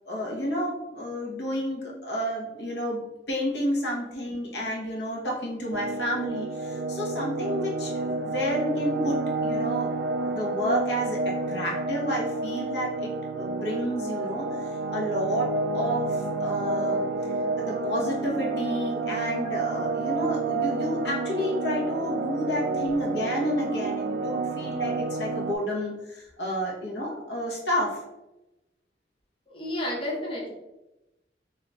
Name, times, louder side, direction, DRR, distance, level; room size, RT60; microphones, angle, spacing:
voice 1, 0.0-9.9 10.2-28.0, equal, 70° left, -3 dB, 1.1 m, -30 dB
sound 1, 5.7-25.5, right 3 dB, 65° right, 0.3 m, -30 dB
voice 2, 29.5-30.5, left 1 dB, 30° left, -3 dB, 0.8 m, -32 dB
3.4 x 2.8 x 3.8 m, 0.97 s
head